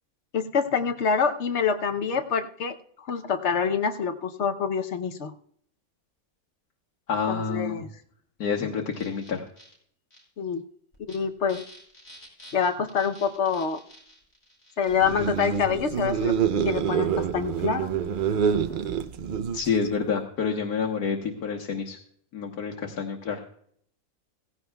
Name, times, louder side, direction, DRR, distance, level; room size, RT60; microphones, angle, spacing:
voice 1, 0.3-5.3 7.3-7.9 10.4-10.7 11.0-11.6 12.5-13.8 14.8-16.4 16.6-17.9, left 6 dB, 55° left, 7 dB, 1.0 m, -26 dB
voice 2, 7.1-7.9 8.4-9.4 19.5-22.0 22.3-23.4, left 6 dB, 80° left, 0 dB, 1.7 m, -28 dB
sound 1, 8.9-9.7 10.1-10.2 10.9-11.2 11.5-15.6 16.5-18.8, equal, 20° left, 6.3 m, -49 dB
sound 2, 14.9-20.0, right 7 dB, 80° right, 0.4 m, -27 dB
17.0 x 16.0 x 2.3 m, 0.63 s
omnidirectional pair, 1.6 m